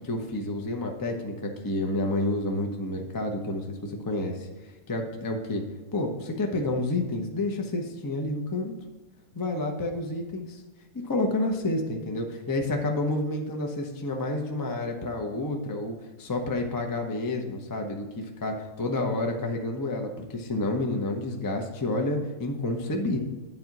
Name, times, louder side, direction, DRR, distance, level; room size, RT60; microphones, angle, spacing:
voice 1, 0.0-4.5 4.9-5.6 5.9-8.7 9.3-10.6 11.0-23.2, left 2 dB, 30° left, 2 dB, 0.4 m, -29 dB
9.1 x 3.9 x 5.9 m, 1.2 s
omnidirectional pair, 1.9 m